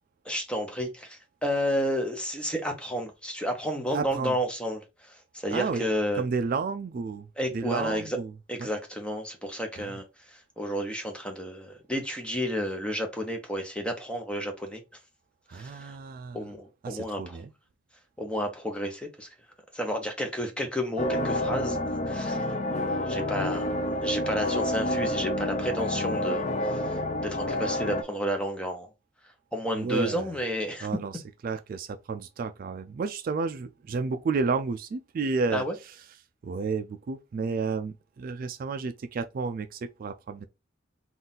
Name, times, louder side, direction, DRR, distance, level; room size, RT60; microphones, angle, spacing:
voice 1, 0.2-6.2 7.4-8.1 8.5-14.8 15.5-16.0 16.3-17.4 18.2-19.3 19.7-21.8 22.1-22.5 22.7-23.7 24.0-28.9 29.5-30.9 35.5-35.7, equal, 5° left, 0.8 m, -31 dB
voice 2, 3.9-4.4 5.5-5.9 6.1-8.3 8.6-8.7 9.8-10.0 15.5-16.5 16.8-17.5 29.7-30.3 30.8-36.1 36.4-40.5, right 4 dB, 50° right, 0.3 m, -31 dB
sound 1, 21.0-28.0, left 1 dB, 40° left, 0.5 m, -29 dB
3.9 x 2.5 x 3.8 m
head